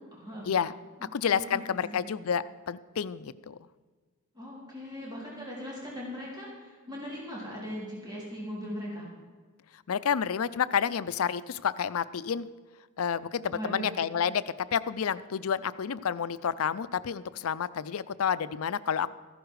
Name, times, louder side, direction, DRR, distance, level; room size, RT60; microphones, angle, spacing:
voice 1, 0.1-0.5 1.3-2.0 4.3-9.1 13.5-13.9, equal, 20° right, -5 dB, 3.6 m, -39 dB
voice 2, 1.1-3.6 9.9-12.5 13.0-14.4 14.7-19.1, left 7 dB, 75° left, 16 dB, 0.5 m, -29 dB
14.5 x 11.5 x 4.7 m, 1.4 s
head